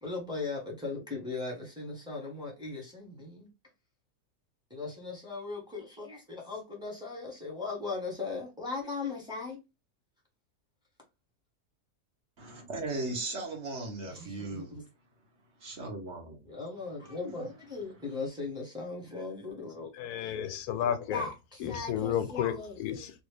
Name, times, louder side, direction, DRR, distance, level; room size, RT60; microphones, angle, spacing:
voice 1, 0.0-3.5 4.7-9.6 14.1-14.8 16.4-19.9 20.2-20.3 21.1-22.8, left 3 dB, 5° right, 1.1 m, -38 dB
voice 2, 12.4-14.7 15.6-16.4, right 2 dB, 50° right, 1.3 m, -37 dB
voice 3, 20.0-21.2 21.6-23.1, left 9 dB, 85° left, 1.1 m, -32 dB
3.3 x 2.4 x 3.2 m
omnidirectional pair, 1.6 m